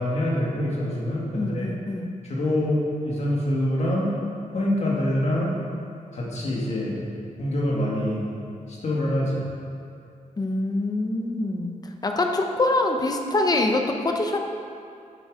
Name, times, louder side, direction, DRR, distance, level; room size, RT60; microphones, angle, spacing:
voice 1, 0.0-1.7 2.2-4.1 4.5-5.5 6.1-7.0 7.4-8.2 8.8-9.4, left 1 dB, 55° left, -4 dB, 2.1 m, -25 dB
voice 2, 1.3-2.1 10.4-14.4, left 2 dB, 30° left, 3 dB, 0.8 m, -25 dB
9.3 x 8.9 x 4.9 m, 2.5 s
wide cardioid pair, 175°, 14 cm